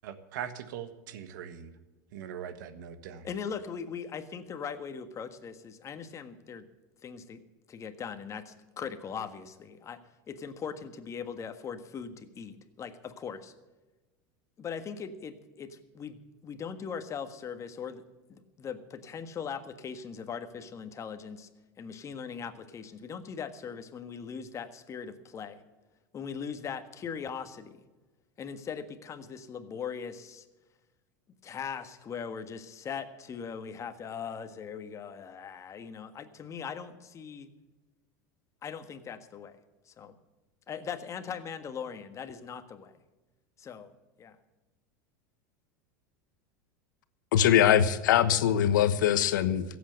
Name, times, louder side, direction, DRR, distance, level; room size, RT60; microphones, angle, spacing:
voice 1, 0.0-1.7 2.1-3.3, right 9 dB, 75° right, 11 dB, 1.5 m, -41 dB
voice 2, 3.2-6.7 7.0-7.4 7.7-10.0 10.3-13.5 14.6-18.0 18.3-21.5 21.8-25.6 26.1-27.8 28.4-30.5 31.4-37.5 38.6-39.6 39.9-40.2 40.7-42.9 43.6-43.9 44.2-44.4, left 6 dB, 30° left, 9 dB, 1.6 m, -40 dB
voice 3, 47.3-49.6, left 10 dB, 85° left, 13 dB, 1.1 m, -22 dB
15.5 x 8.4 x 7.9 m, 1.1 s
supercardioid pair, 115°, 10 cm